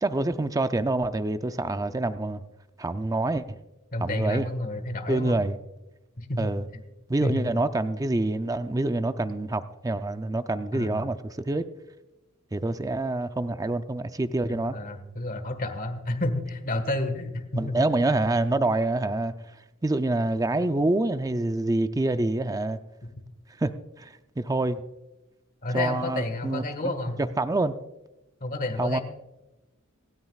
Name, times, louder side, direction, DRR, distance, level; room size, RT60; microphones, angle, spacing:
voice 1, 0.0-2.4 2.8-3.4 4.0-4.5 5.1-5.6 6.4-6.6 7.1-11.6 12.5-14.7 17.6-19.3 19.8-22.8 23.6-24.8 25.7-27.7 28.8-29.0, right 2 dB, 15° right, 0.4 m, -26 dB
voice 2, 3.9-5.4 6.2-6.4 6.7-6.8 7.2-7.5 10.7-11.1 14.5-17.8 25.6-27.2 28.4-29.0, left 1 dB, 40° left, 1.5 m, -30 dB
26.5 x 9.7 x 2.4 m
head